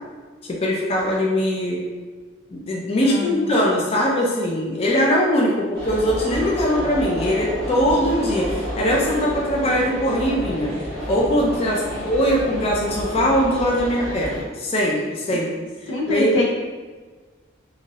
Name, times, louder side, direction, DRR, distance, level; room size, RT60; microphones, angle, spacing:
voice 1, 0.5-1.8 2.5-10.7 11.1-15.5 16.1-16.4, equal, 30° left, -3 dB, 0.4 m, -21 dB
voice 2, 3.0-3.4 11.9-12.0 15.3-15.4 15.9-16.4, left 1 dB, 90° left, -3 dB, 0.7 m, -25 dB
sound 1, 5.7-14.4, equal, 5° left, 1.0 m, -30 dB
2.6 x 2.5 x 3.0 m, 1.4 s
head